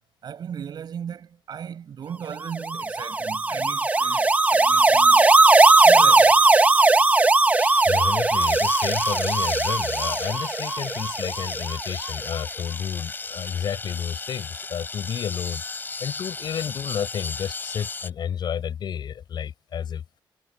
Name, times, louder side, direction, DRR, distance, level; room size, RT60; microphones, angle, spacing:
voice 1, 0.2-5.3 5.8-6.5, right 8 dB, 55° right, 8.0 m, -37 dB
sound 1, 2.5-11.8, right 3 dB, 20° right, 1.9 m, -19 dB
sound 2, 7.6-18.1, left 4 dB, 25° left, 3.9 m, -34 dB
voice 2, 7.9-20.0, left 8 dB, 60° left, 6.1 m, -31 dB
wide cardioid pair, 170°, 8 cm